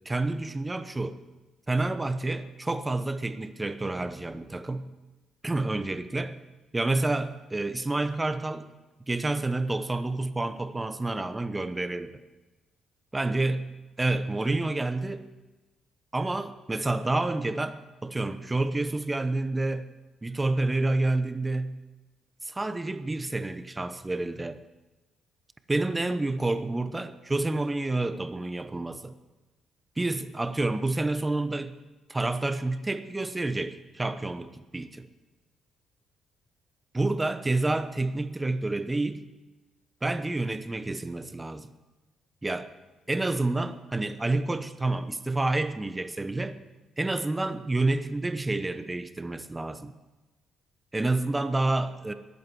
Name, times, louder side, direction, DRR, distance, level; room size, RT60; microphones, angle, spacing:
voice 1, 0.0-1.2 1.7-4.9 5.4-6.4 6.7-8.7 9.1-12.1 13.1-13.7 14.0-15.2 16.1-19.9 20.2-21.8 22.4-24.6 25.7-29.1 30.0-31.8 32.1-35.1 36.9-39.2 40.0-41.7 42.4-42.7 43.1-46.6 47.0-49.9 50.9-52.1, right 2 dB, 15° right, 11 dB, 0.9 m, -29 dB
22.0 x 8.2 x 4.8 m, 1.1 s
cardioid pair, 90°, 0 cm